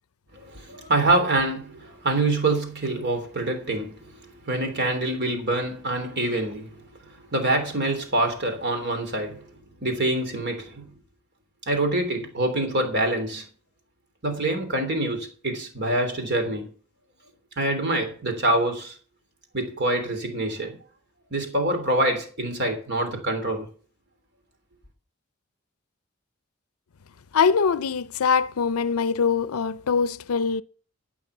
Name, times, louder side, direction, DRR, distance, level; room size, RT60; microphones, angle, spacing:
voice 1, 0.3-9.5 9.8-10.9 11.7-13.4 14.2-16.7 17.6-19.0 19.5-20.8 21.3-23.7, right 2 dB, 55° right, 3.2 m, -26 dB
voice 2, 27.3-30.6, left 5 dB, 85° left, 0.5 m, -23 dB
15.0 x 6.0 x 6.8 m
head